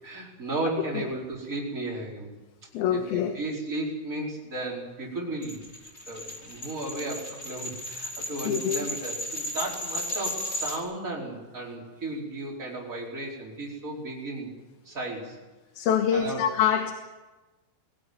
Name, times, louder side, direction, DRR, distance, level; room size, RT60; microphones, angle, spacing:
voice 1, 0.0-2.3 2.9-5.6 6.1-14.5 14.8-15.4 16.1-16.4, right 2 dB, 20° right, -3 dB, 4.9 m, -34 dB
voice 2, 2.7-3.3 8.4-8.9 15.8-16.9, left 9 dB, 70° left, 5 dB, 3.0 m, -25 dB
sound 1, 5.4-10.8, left 1 dB, 15° left, 3.5 m, -35 dB
22.5 x 17.0 x 9.5 m, 1.2 s
omnidirectional pair, 4.7 m